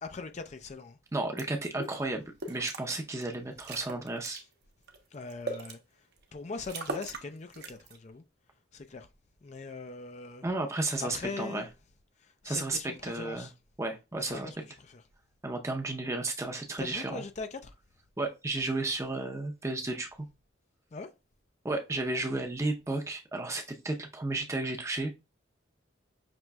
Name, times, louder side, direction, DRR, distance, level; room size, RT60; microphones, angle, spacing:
voice 1, 0.0-1.0 5.1-6.1 6.3-8.2 8.7-9.1 9.4-10.4 11.0-11.7 12.2-13.5 14.2-15.0 16.8-17.7 20.9-21.1, left 3 dB, 35° left, 0.4 m, -41 dB
voice 2, 1.1-4.4 10.4-11.7 12.4-13.5 13.8-14.5 15.4-17.2 18.2-20.1 21.6-25.1, right 2 dB, 15° right, 0.6 m, -33 dB
sound 1, 1.4-1.5 1.8-2.0 2.4-2.8 3.2-3.3 3.6-4.4 4.9-5.7 6.2-6.3 6.6-7.3 7.5-8.0, right 2 dB, 55° right, 0.9 m, -38 dB
5.9 x 3.1 x 2.2 m
head